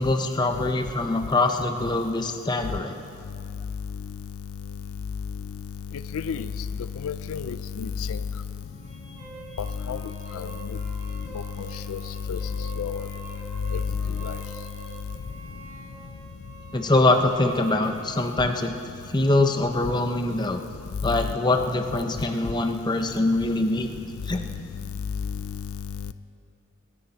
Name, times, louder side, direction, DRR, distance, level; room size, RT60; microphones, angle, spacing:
voice 1, 0.0-3.0 16.7-18.7 19.1-20.6 21.0-23.9 24.3-24.4, left 2 dB, 20° left, 5 dB, 0.7 m, -23 dB
voice 2, 6.1-6.4 7.0-8.2 9.9-10.0 10.3-10.5 11.9-12.0 12.3-12.4 12.8-13.0 13.7-13.8 14.2-14.4, left 6 dB, 75° left, 12 dB, 0.4 m, -30 dB
sound 1, 8.5-18.5, right 4 dB, 35° right, 2.8 m, -45 dB
26.0 x 9.9 x 4.0 m, 2.6 s
head